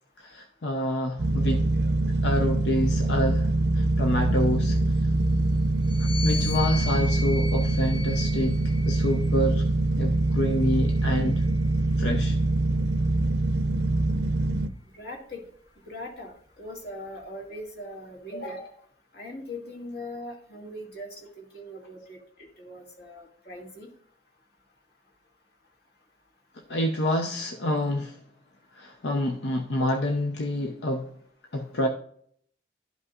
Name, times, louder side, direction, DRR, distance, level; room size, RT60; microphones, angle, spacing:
voice 1, 0.2-1.6 2.2-3.5 3.8-4.8 6.0-8.6 8.9-9.7 10.0-11.4 12.0-12.4 26.7-28.2 28.8-31.1 31.5-31.9, left 1 dB, 85° left, 0.7 m, -27 dB
sound 1, 1.2-14.7, right 2 dB, 75° right, 0.5 m, -24 dB
sound 2, 5.8-9.4 10.3-11.9, left 4 dB, 40° left, 1.0 m, -38 dB
voice 2, 14.9-15.4 15.9-16.3 16.6-18.7 19.1-21.1 21.4-22.2 22.6-23.9, left 1 dB, 60° left, 2.0 m, -40 dB
12.0 x 5.4 x 2.4 m
head